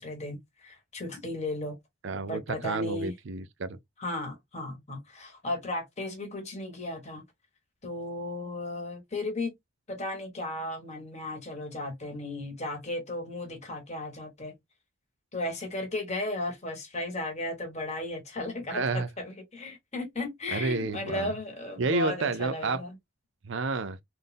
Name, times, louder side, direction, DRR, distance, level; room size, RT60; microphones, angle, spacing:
voice 1, 0.0-1.8 2.3-3.1 4.0-7.2 7.8-9.5 9.9-14.5 15.3-22.9, left 2 dB, 30° left, 1.5 m, -35 dB
voice 2, 2.0-3.8 18.7-19.1 20.5-21.3 21.8-22.8 23.4-24.0, right 3 dB, 60° right, 0.5 m, -30 dB
4.0 x 2.6 x 3.4 m
head